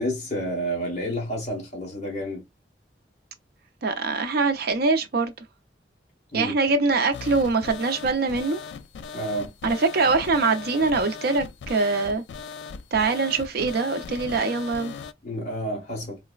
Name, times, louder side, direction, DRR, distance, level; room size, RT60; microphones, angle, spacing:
voice 1, 0.0-2.4 6.3-6.5 9.1-9.5 15.2-16.2, equal, 40° left, 1.3 m, -29 dB
voice 2, 3.8-5.3 6.3-8.6 9.6-12.2 12.9-14.9, right 3 dB, 60° right, 0.5 m, -23 dB
sound 1, 7.1-15.1, left 5 dB, 75° left, 0.3 m, -38 dB
3.9 x 2.1 x 2.3 m
head